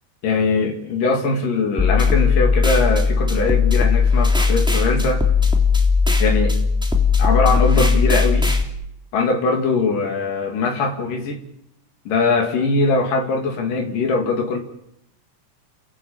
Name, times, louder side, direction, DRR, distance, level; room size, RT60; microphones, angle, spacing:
voice 1, 0.2-5.2 6.2-6.5 7.2-8.5 9.1-11.4 12.1-14.6, left 3 dB, 80° left, 2 dB, 4.2 m, -21 dB
sound 1, 1.8-8.6, left 5 dB, ahead, 2.6 m, -17 dB
30.0 x 17.5 x 8.7 m, 0.81 s
omnidirectional pair, 3.8 m